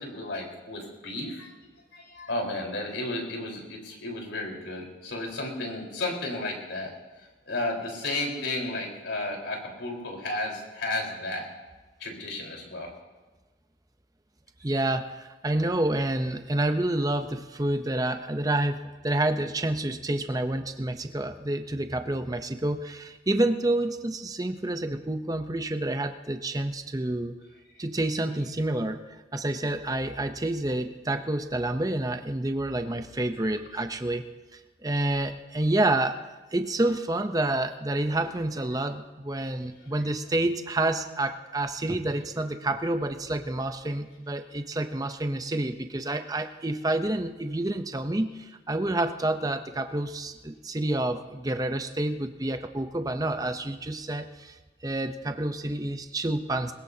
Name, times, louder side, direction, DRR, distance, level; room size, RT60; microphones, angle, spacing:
voice 1, 0.0-1.5 1.9-6.9 7.2-11.5 12.0-12.9 39.8-40.0 44.4-44.5, left 2 dB, 80° left, 0 dB, 4.3 m, -33 dB
voice 2, 14.6-18.8 19.0-27.3 27.8-29.0 29.3-34.3 34.5-36.2 36.5-54.6 54.8-56.7, right 1 dB, 20° right, 7 dB, 0.7 m, -28 dB
21.5 x 20.5 x 2.8 m, 1.2 s
head